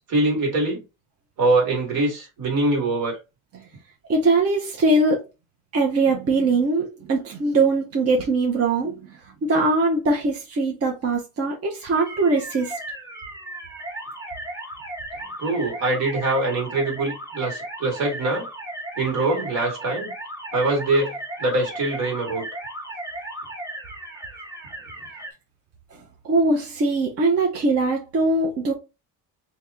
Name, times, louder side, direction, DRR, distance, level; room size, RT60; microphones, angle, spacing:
voice 1, 0.1-0.8 1.4-3.2 15.4-18.5 19.0-20.1 20.5-21.1 21.4-22.4, right 2 dB, 70° right, 2.0 m, -23 dB
voice 2, 4.1-5.2 5.7-12.8 26.2-28.7, right 3 dB, 45° right, 0.9 m, -21 dB
sound 1, 12.0-25.3, right 1 dB, 10° right, 1.0 m, -36 dB
3.0 x 2.9 x 3.6 m
cardioid pair, 105°, 35 cm